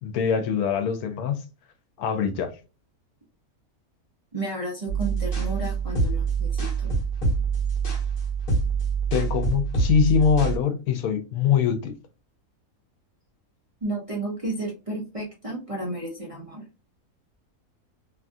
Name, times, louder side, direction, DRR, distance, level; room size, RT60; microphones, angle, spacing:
voice 1, 0.0-1.4 2.0-2.5 9.1-11.9, left 7 dB, 90° left, 1.1 m, -23 dB
voice 2, 4.3-6.9 13.8-16.6, right 2 dB, 35° right, 0.6 m, -32 dB
sound 1, 4.9-10.6, right 5 dB, 40° left, 1.1 m, -25 dB
2.9 x 2.4 x 2.5 m
omnidirectional pair, 1.5 m